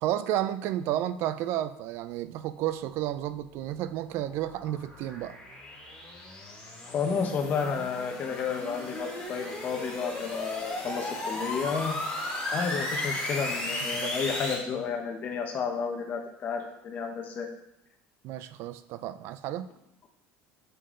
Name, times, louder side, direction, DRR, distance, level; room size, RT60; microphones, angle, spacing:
voice 1, 0.0-5.4 13.9-14.2 18.2-19.7, right 12 dB, 60° right, 13 dB, 0.4 m, -32 dB
sound 1, 3.4-14.5, left 1 dB, 15° left, 2.5 m, -36 dB
voice 2, 6.8-12.2 12.5-17.5, left 6 dB, 35° left, 2 dB, 1.0 m, -31 dB
6.8 x 5.3 x 3.7 m, 0.80 s
cardioid pair, 140°, 5 cm